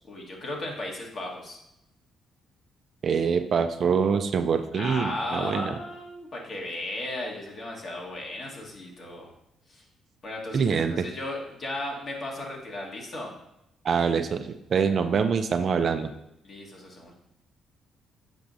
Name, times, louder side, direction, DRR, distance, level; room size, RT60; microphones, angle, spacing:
voice 1, 0.1-1.6 4.7-9.3 9.7-9.8 10.2-13.3 16.4-17.1, left 1 dB, 50° left, -1 dB, 1.7 m, -35 dB
voice 2, 3.0-5.7 10.5-11.0 13.8-16.1, right 6 dB, 55° right, 8 dB, 0.4 m, -25 dB
6.9 x 5.0 x 2.7 m, 0.84 s
cardioid pair, 90°, 0 cm